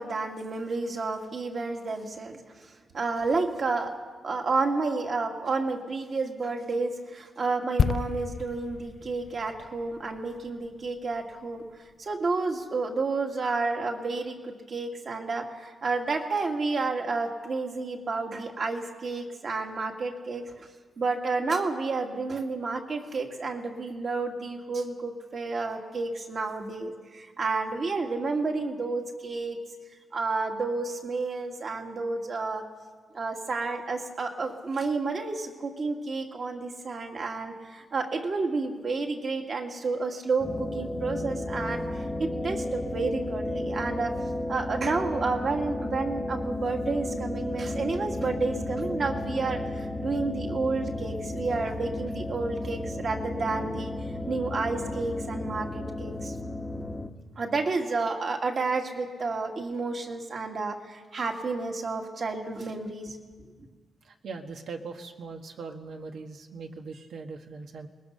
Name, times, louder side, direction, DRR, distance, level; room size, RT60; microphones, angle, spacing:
voice 1, 0.0-2.4 2.9-3.9 4.2-11.6 12.0-20.7 21.0-29.6 30.1-32.7 33.1-41.8 42.2-44.1 44.5-53.9 54.3-56.3 57.4-63.2, right 3 dB, 45° right, 2 dB, 2.2 m, -30 dB
sound 1, 7.8-11.4 11.7-11.9, left 6 dB, 50° left, 0.5 m, -31 dB
sound 2, 40.4-57.1, left 1 dB, 20° left, 1.2 m, -33 dB
voice 2, 64.0-67.9, right 4 dB, 70° right, 4 dB, 1.4 m, -40 dB
22.0 x 20.5 x 6.6 m, 1.5 s
wide cardioid pair, 140°, 0 cm